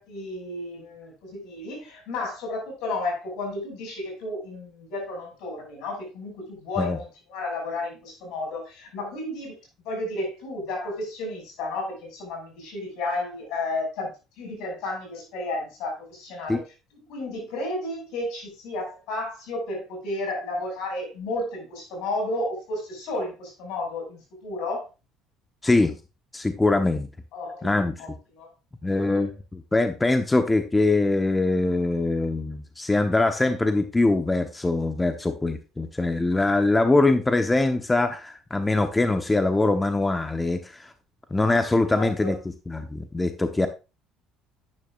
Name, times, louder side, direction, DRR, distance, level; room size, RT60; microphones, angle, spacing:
voice 1, 0.0-9.6 9.8-16.6 16.9-24.8 27.3-28.5 28.9-29.4 41.9-42.4, left 2 dB, 70° left, 1 dB, 6.3 m, -32 dB
voice 2, 25.6-25.9 26.3-27.1 27.6-28.0 28.8-40.9 41.3-42.4 42.7-43.7, left 2 dB, 15° left, 7 dB, 0.9 m, -23 dB
11.0 x 9.8 x 2.5 m, 0.29 s
hypercardioid pair, 70°, 0 cm